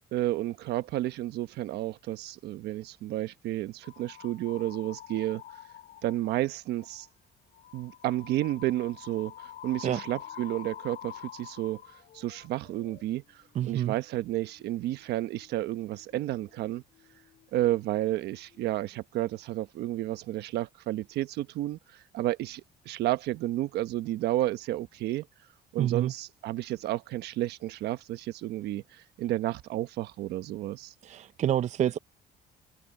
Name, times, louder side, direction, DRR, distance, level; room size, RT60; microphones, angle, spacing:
voice 1, 0.1-5.4 6.0-7.1 7.7-9.3 9.6-11.8 12.1-13.2 13.6-16.8 17.5-25.2 25.7-30.9, right 15 dB, 80° right, 1.2 m, -31 dB
Bitmaps & wavs Experiment, 3.8-6.4 6.8-7.1 7.5-17.9 18.1-18.8, left 11 dB, 60° left, 6.2 m, -49 dB
voice 2, 13.6-13.9 25.8-26.1 31.0-32.0, right 11 dB, 45° right, 0.5 m, -27 dB
cardioid pair, 110°, 17 cm